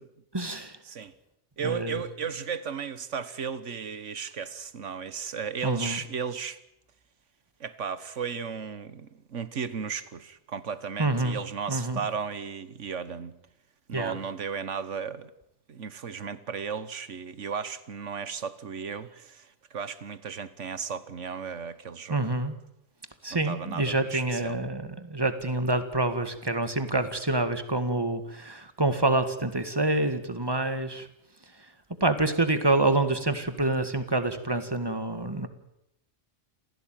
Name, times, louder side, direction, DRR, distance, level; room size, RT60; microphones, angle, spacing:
voice 1, 0.3-0.8 1.6-2.0 5.6-6.0 11.0-11.4 11.7-12.0 13.9-14.2 22.1-22.5 23.2-31.1 32.0-35.5, right 2 dB, 20° right, 1.9 m, -27 dB
voice 2, 1.6-6.6 7.6-13.4 13.9-15.3 15.7-22.2 23.3-24.6, right 6 dB, 75° right, 1.6 m, -35 dB
27.5 x 16.5 x 9.1 m
omnidirectional pair, 1.3 m